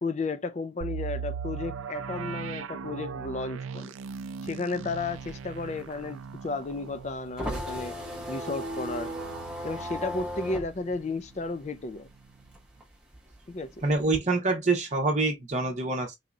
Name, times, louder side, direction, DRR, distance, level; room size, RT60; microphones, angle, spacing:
voice 1, 0.0-3.9 4.4-8.0 8.3-9.1 9.6-12.1 13.5-13.7, left 3 dB, 35° left, 0.4 m, -33 dB
sound 1, 0.8-10.5 10.9-11.0 11.5-11.7, right 6 dB, 85° right, 0.4 m, -39 dB
sound 2, 5.0-12.1 12.4-14.2, equal, 5° right, 1.0 m, -36 dB
voice 2, 13.8-16.1, right 3 dB, 35° right, 0.9 m, -26 dB
4.1 x 2.7 x 2.4 m
head